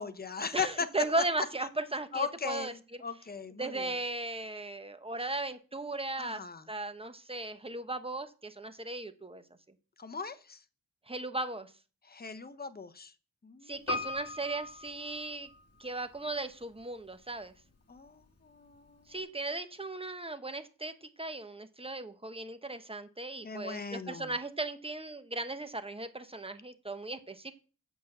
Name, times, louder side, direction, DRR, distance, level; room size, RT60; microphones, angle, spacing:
voice 1, 0.0-0.9 2.1-2.7 3.0-3.9 6.2-6.6 10.0-10.6 12.1-13.1 13.4-13.8 17.9-19.2 23.4-24.3, left 5 dB, 30° left, 11 dB, 0.9 m, -38 dB
voice 2, 0.5-3.0 3.6-9.4 11.1-11.7 13.7-15.5 15.8-17.5 19.1-27.5, right 2 dB, 15° right, 9 dB, 1.0 m, -37 dB
Piano, 13.9-15.9 16.2-16.3, left 3 dB, 45° left, 2.7 m, -38 dB
8.2 x 6.1 x 7.7 m, 0.36 s
wide cardioid pair, 115°, 34 cm